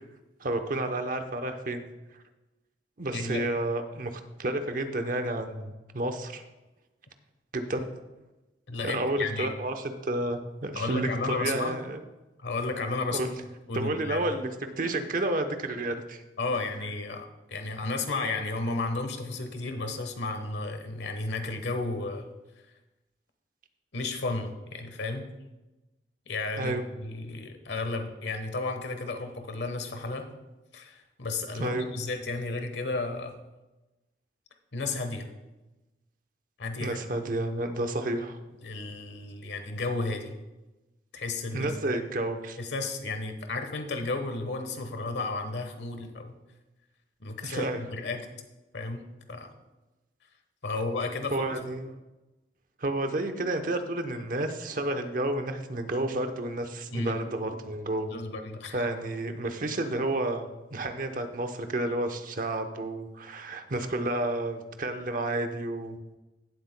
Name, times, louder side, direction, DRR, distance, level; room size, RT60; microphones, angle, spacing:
voice 1, 0.4-1.8 3.0-6.4 7.5-7.8 8.8-12.0 13.1-13.3 13.7-14.5 14.8-16.2 26.6-26.8 31.6-31.9 36.8-38.4 41.5-42.6 47.4-47.8 51.3-51.9 52.8-58.1 58.7-60.5 60.7-66.0, right 2 dB, 50° right, 7 dB, 0.8 m, -31 dB
voice 2, 3.1-3.5 8.7-9.5 10.7-11.8 12.4-13.3 13.7-14.3 16.4-22.3 23.9-25.3 26.3-30.3 30.7-33.4 34.7-35.3 36.6-37.0 38.6-40.3 41.1-41.7 42.6-46.3 47.2-48.3 48.7-49.0 49.3-49.5 50.6-51.6 56.9-57.2 58.1-58.9, left 3 dB, 80° left, 6 dB, 1.1 m, -33 dB
16.5 x 7.8 x 2.2 m, 1.1 s
head